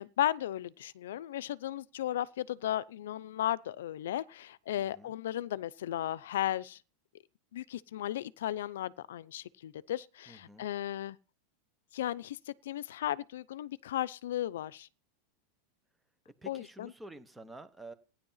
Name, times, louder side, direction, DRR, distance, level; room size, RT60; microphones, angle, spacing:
voice 1, 0.0-6.8 7.5-11.2 11.9-14.9 16.5-16.9, left 12 dB, 85° left, 0.7 m, -35 dB
voice 2, 4.8-5.1 10.3-10.7 16.4-17.9, right 2 dB, 5° right, 0.9 m, -49 dB
16.0 x 10.5 x 5.7 m
supercardioid pair, 180°, 0 cm